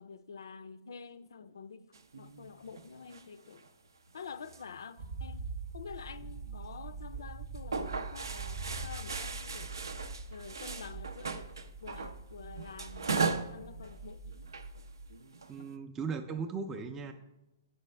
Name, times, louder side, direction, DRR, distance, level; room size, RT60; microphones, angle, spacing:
voice 1, 0.0-1.9 2.2-3.6 4.1-5.4 5.7-9.8 10.3-11.5 11.8-14.5, left 5 dB, 80° left, 0.4 m, -48 dB
sound 1, 1.9-3.7 4.0-5.4 5.9-6.2 6.6-6.8 7.1-7.3 7.5-12.2 12.5-13.6 13.8-14.0 14.4-15.7, right 4 dB, 85° right, 0.6 m, -38 dB
sound 2, 5.0-15.1, right 4 dB, 55° right, 0.7 m, -44 dB
voice 2, 15.5-17.1, right 5 dB, 15° right, 0.4 m, -37 dB
9.2 x 5.4 x 3.3 m
hypercardioid pair, 135°, 2 cm